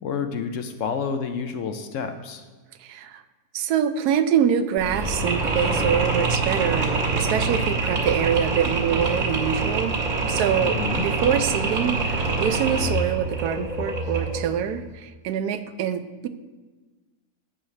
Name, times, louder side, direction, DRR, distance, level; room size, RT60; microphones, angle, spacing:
voice 1, 0.0-2.4 10.6-11.0, left 6 dB, 65° left, 7 dB, 0.9 m, -29 dB
voice 2, 2.8-3.2 3.5-10.0 10.3-16.3, right 9 dB, 85° right, 11 dB, 1.1 m, -25 dB
Mechanisms, 4.8-14.5, right 3 dB, 55° right, 1.6 m, -25 dB
11.0 x 8.3 x 3.2 m, 1.3 s
omnidirectional pair, 1.6 m